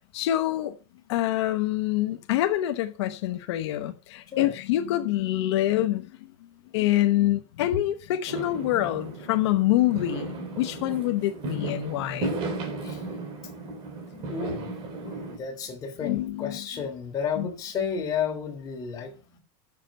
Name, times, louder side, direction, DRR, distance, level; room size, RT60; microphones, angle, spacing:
voice 1, 0.1-0.7 1.1-6.1 6.7-12.3 16.0-16.8 17.4-17.5, left 14 dB, 85° left, 0.9 m, -26 dB
Fireworks, 8.3-15.4, right 3 dB, 40° right, 3.5 m, -35 dB
voice 2, 14.3-19.4, left 6 dB, 25° left, 3.3 m, -32 dB
9.0 x 7.4 x 7.3 m
supercardioid pair, 155°, 14 cm